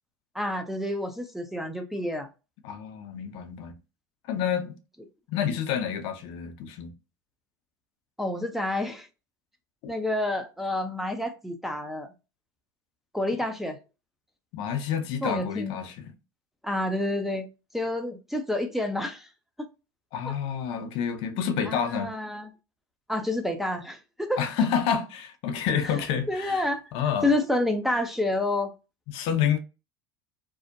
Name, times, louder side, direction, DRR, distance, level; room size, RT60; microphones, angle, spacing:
voice 1, 0.3-2.3 8.2-9.1 9.9-12.1 13.1-13.8 15.2-15.8 16.6-17.5 17.7-19.3 20.3-20.4 21.7-22.5 23.1-24.4 26.3-26.8 27.2-28.7, left 1 dB, ahead, 0.4 m, -28 dB
voice 2, 2.6-3.7 4.3-4.8 5.3-6.9 9.8-9.9 14.5-16.1 20.1-22.1 24.4-27.3 29.1-29.6, left 8 dB, 55° left, 0.5 m, -29 dB
2.6 x 2.1 x 2.5 m
hypercardioid pair, 85°, 11 cm